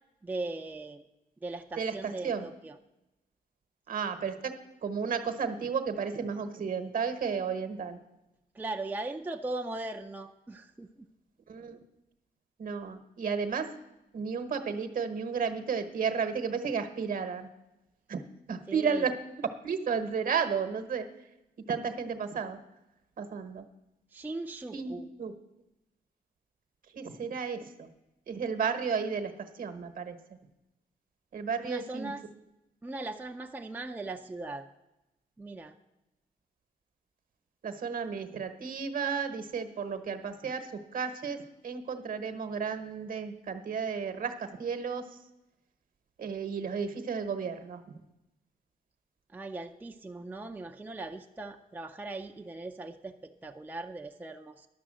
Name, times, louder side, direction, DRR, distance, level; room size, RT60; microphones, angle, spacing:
voice 1, 0.2-1.0 1.4-2.8 8.5-11.1 18.7-19.1 24.1-25.1 31.6-32.3 32.8-34.7 35.4-35.7 49.3-54.7, right 2 dB, 10° right, 4 dB, 0.5 m, -39 dB
voice 2, 1.8-2.5 3.9-8.0 11.5-11.8 12.6-13.7 14.1-17.5 18.1-18.2 18.5-21.1 21.7-22.6 23.2-23.7 24.7-25.3 26.9-27.9 28.3-30.2 31.3-32.1 37.6-45.1 46.2-48.0, right 6 dB, 55° right, 9 dB, 1.1 m, -33 dB
11.5 x 7.0 x 7.5 m, 0.95 s
wide cardioid pair, 165°, 17 cm